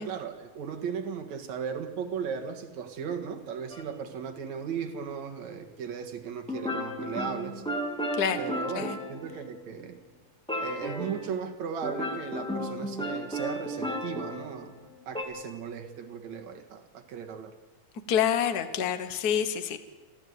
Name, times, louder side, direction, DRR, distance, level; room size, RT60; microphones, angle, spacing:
voice 1, 0.0-7.6 8.4-10.0 10.6-14.8 15.1-17.5, right 7 dB, 65° right, 5 dB, 2.8 m, -36 dB
sound 1, 3.7-3.8 6.5-9.7 10.5-11.3 11.8-15.2, equal, ahead, 1.8 m, -34 dB
voice 2, 18.1-19.8, left 8 dB, 65° left, 10 dB, 0.9 m, -27 dB
29.0 x 12.0 x 8.3 m, 1.2 s
omnidirectional pair, 3.6 m